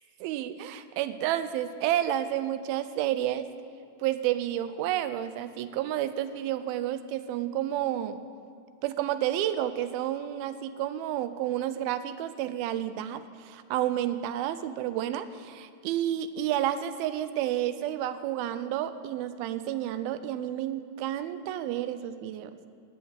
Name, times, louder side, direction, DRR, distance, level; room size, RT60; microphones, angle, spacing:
voice 1, 0.2-3.5 4.0-8.2 8.8-22.6, right 12 dB, 90° right, 12 dB, 2.5 m, -30 dB
16.5 x 5.7 x 8.9 m, 2.4 s
omnidirectional pair, 4.2 m